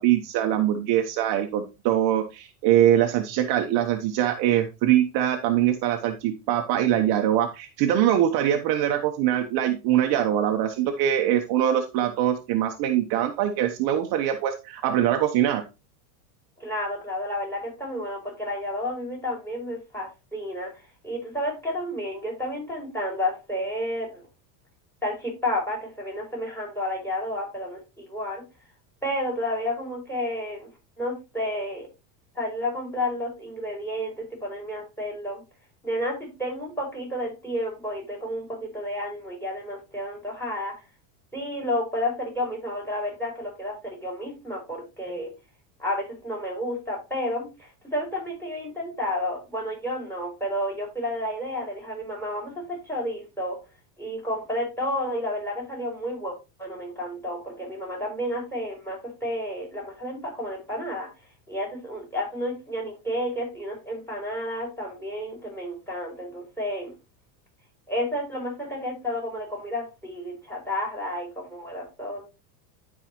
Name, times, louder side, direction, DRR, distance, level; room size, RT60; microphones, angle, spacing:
voice 1, 0.0-15.6, right 11 dB, 50° right, 5 dB, 1.1 m, -23 dB
voice 2, 16.6-20.7 21.0-24.3 25.0-28.4 29.0-30.7 31.0-31.9 32.4-35.4 35.8-40.7 41.3-45.3 45.8-53.6 54.0-61.1 61.5-66.9 67.9-72.2, left 1 dB, 5° left, 0 dB, 5.4 m, -31 dB
11.5 x 4.8 x 3.0 m, 0.27 s
supercardioid pair, 115°, 49 cm